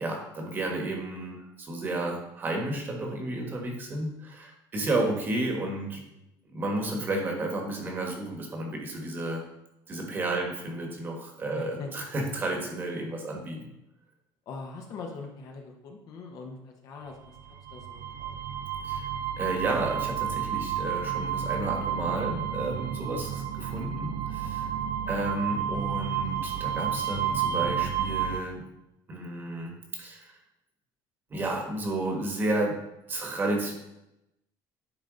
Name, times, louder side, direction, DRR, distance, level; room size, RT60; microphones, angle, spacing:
voice 1, 0.0-6.0 6.5-9.4 9.9-13.7 18.8-19.1 19.4-24.7 25.1-28.6 29.1-29.7 30.0-30.3 31.3-32.7 33.1-33.7, right 2 dB, 25° right, 1 dB, 1.3 m, -32 dB
voice 2, 11.5-11.9 14.5-18.4 25.0-25.1, left 4 dB, 45° left, 2 dB, 1.0 m, -42 dB
sound 1, 17.4-28.4, right 8 dB, 60° right, 0.5 m, -31 dB
10.0 x 4.0 x 3.9 m, 0.88 s
cardioid pair, 170°, 9 cm